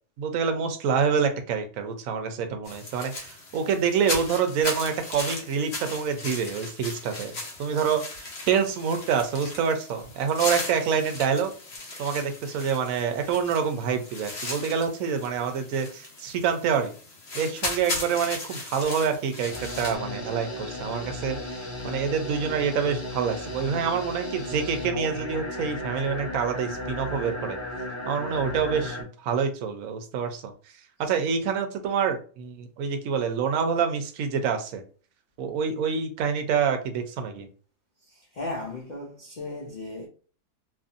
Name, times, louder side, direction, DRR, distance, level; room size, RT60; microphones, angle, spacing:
voice 1, 0.2-11.5 12.0-16.9 17.3-21.4 21.8-27.6 28.1-30.5 31.0-34.8 35.4-37.5, right 6 dB, 75° right, 1.0 m, -27 dB
sound 1, 2.6-19.9, left 2 dB, 55° left, 1.1 m, -37 dB
sound 2, 19.5-29.0, left 1 dB, 25° left, 0.7 m, -35 dB
voice 2, 38.0-40.1, left 2 dB, 80° left, 0.4 m, -36 dB
2.9 x 2.5 x 2.4 m
omnidirectional pair, 1.5 m